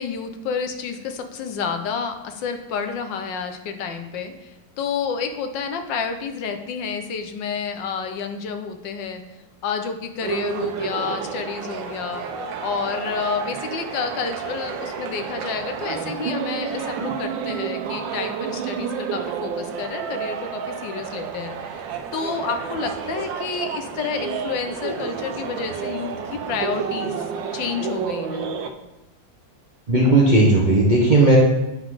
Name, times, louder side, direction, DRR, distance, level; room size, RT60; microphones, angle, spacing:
voice 1, 0.0-9.2 9.6-12.3 12.6-27.2 27.5-28.5, left 6 dB, 75° left, 6 dB, 1.4 m, -29 dB
sound 1, 10.2-28.7, right 7 dB, 80° right, 1.3 m, -30 dB
voice 2, 29.9-31.4, right 2 dB, 35° right, -4 dB, 0.8 m, -15 dB
8.4 x 3.9 x 4.8 m, 0.95 s
omnidirectional pair, 2.1 m